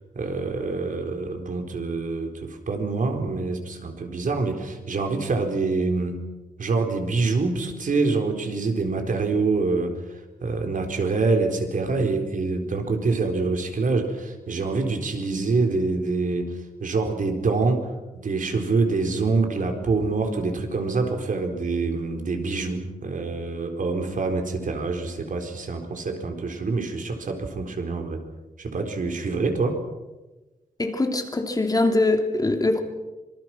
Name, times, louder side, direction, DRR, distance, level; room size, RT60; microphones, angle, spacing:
voice 1, 0.2-6.2 6.6-28.2 28.6-29.8, right 3 dB, 65° right, 4 dB, 4.3 m, -26 dB
voice 2, 30.8-32.8, left 2 dB, 25° left, 4 dB, 3.1 m, -22 dB
26.0 x 25.0 x 6.2 m, 1.1 s
wide cardioid pair, 120°, 15 cm